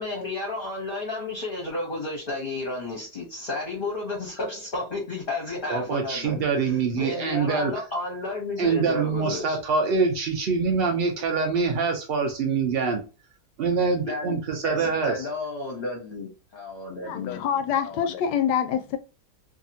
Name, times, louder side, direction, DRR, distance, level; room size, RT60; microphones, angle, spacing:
voice 1, 0.0-9.6 13.7-14.4 14.6-17.4, left 2 dB, 45° left, 0.8 m, -32 dB
voice 2, 5.7-7.7 8.6-13.0 13.6-15.1, right 5 dB, 90° right, 0.5 m, -25 dB
voice 3, 17.0-19.0, left 8 dB, 85° left, 1.2 m, -26 dB
2.7 x 2.5 x 2.6 m
omnidirectional pair, 1.7 m